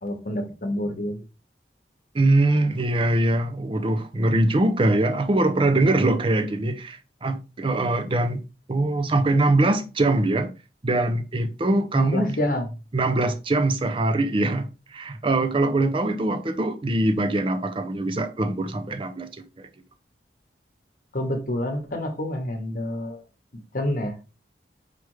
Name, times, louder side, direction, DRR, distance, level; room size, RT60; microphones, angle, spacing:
voice 1, 0.0-1.2 11.9-12.6 21.1-23.2 23.7-24.2, left 1 dB, 50° left, 1.1 m, -28 dB
voice 2, 2.1-8.4 8.7-10.5 10.8-12.4 12.9-19.3 19.6-19.7, right 2 dB, 30° right, 0.5 m, -22 dB
4.9 x 3.4 x 3.1 m
head